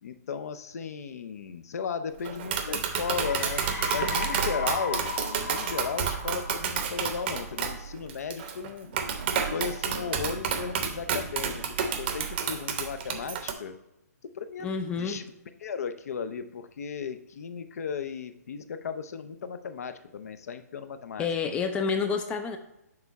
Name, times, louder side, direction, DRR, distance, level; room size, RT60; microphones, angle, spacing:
voice 1, 0.0-3.6 3.9-8.9 9.5-13.8 14.3-15.2 15.6-21.3, left 6 dB, 60° left, 10 dB, 0.5 m, -35 dB
Tap, 2.2-13.5, right 7 dB, 40° right, 0.7 m, -30 dB
sound 1, 2.8-7.4, left 4 dB, 85° left, 1.6 m, -36 dB
voice 2, 14.6-15.3 21.2-22.6, left 5 dB, 10° left, 7 dB, 0.3 m, -29 dB
6.7 x 3.5 x 4.0 m, 0.86 s
hypercardioid pair, 150°, 9 cm